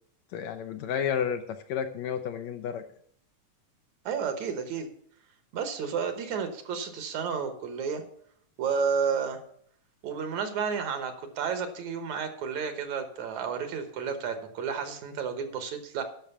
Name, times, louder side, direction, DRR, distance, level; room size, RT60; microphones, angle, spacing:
voice 1, 0.3-1.4 1.7-2.8, left 8 dB, 75° left, 7 dB, 1.8 m, -31 dB
voice 2, 4.1-4.9 5.5-8.0 8.6-9.4 10.0-16.0, right 6 dB, 70° right, 7 dB, 2.3 m, -31 dB
10.5 x 6.2 x 6.9 m, 0.64 s
omnidirectional pair, 3.6 m